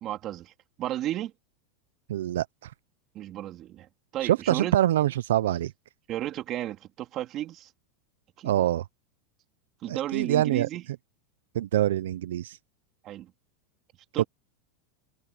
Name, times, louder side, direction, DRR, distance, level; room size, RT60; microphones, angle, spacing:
voice 1, 0.0-0.5 0.8-1.3 3.1-4.8 6.1-7.7 8.4-8.7 9.8-10.8 13.0-13.3 14.1-14.3, right 13 dB, 35° right, 3.0 m, -33 dB
voice 2, 2.1-2.7 4.2-5.7 8.4-8.9 9.9-10.7 11.5-12.6 14.2-14.3, right 12 dB, 85° right, 0.5 m, -25 dB
supercardioid pair, 140°, 0 cm